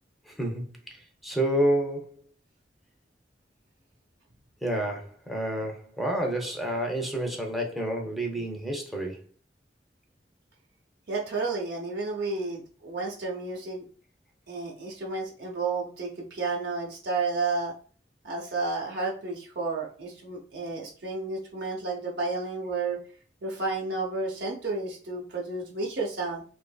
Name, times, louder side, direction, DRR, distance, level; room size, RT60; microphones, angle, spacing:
voice 1, 0.3-2.1 4.6-9.2, right 1 dB, ahead, 0.4 m, -29 dB
voice 2, 11.1-13.8 14.5-17.7 18.2-23.0 23.4-26.4, right 3 dB, 75° right, 0.7 m, -31 dB
2.7 x 2.5 x 2.2 m
head